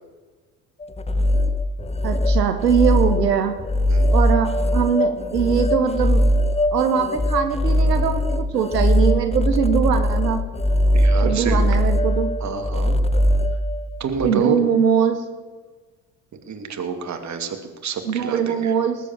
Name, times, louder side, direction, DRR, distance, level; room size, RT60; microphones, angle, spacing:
sound 1, 0.8-14.3, equal, 15° left, 0.8 m, -20 dB
voice 1, 2.0-3.5 4.1-6.2 6.7-10.4 11.2-12.3 14.2-15.2 18.1-19.0, right 7 dB, 90° right, 7 dB, 1.1 m, -21 dB
voice 2, 10.9-11.6 12.4-13.0 14.0-14.6 16.5-18.7, right 6 dB, 35° right, 6 dB, 2.4 m, -28 dB
19.5 x 8.4 x 7.4 m, 1.4 s
hypercardioid pair, 65°, 47 cm